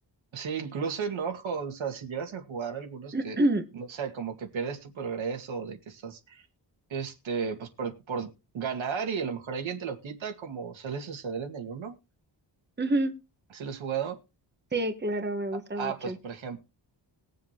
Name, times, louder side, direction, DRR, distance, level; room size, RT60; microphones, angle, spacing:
voice 1, 0.3-3.4 3.7-6.5 6.9-8.3 8.5-12.0 13.5-14.2 15.5-16.6, right 6 dB, 85° right, 4 dB, 2.2 m, -34 dB
voice 2, 3.1-3.6 12.8-13.1 14.7-16.2, right 1 dB, 20° right, 6 dB, 1.6 m, -27 dB
20.5 x 7.5 x 3.0 m, 0.28 s
wide cardioid pair, 110°, 46 cm